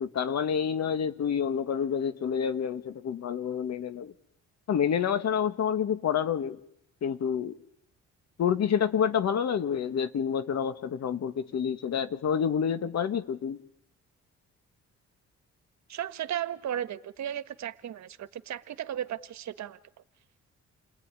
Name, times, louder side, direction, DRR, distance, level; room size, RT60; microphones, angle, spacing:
voice 1, 0.0-4.1 4.7-6.6 7.0-7.6 8.4-13.6, left 7 dB, 60° left, 11 dB, 1.8 m, -28 dB
voice 2, 15.9-19.8, right 10 dB, 65° right, 12 dB, 1.5 m, -35 dB
29.5 x 19.5 x 9.8 m, 0.74 s
cardioid pair, 90°, 30 cm